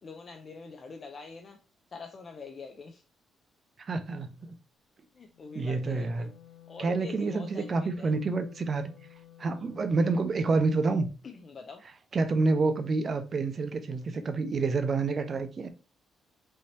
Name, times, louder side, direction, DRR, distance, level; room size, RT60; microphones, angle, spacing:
voice 1, 0.0-1.6 1.9-3.0 5.1-6.3 6.7-8.1 11.2-11.8, left 4 dB, 35° left, 0.5 m, -45 dB
voice 2, 3.8-4.6 5.5-6.3 6.8-8.9 9.4-11.1 12.1-15.7, right 3 dB, 35° right, 0.6 m, -28 dB
Wind instrument woodwind instrument, 5.2-10.4, left 12 dB, 90° left, 1.4 m, -54 dB
5.4 x 2.8 x 3.3 m
cardioid pair, 150°, 0 cm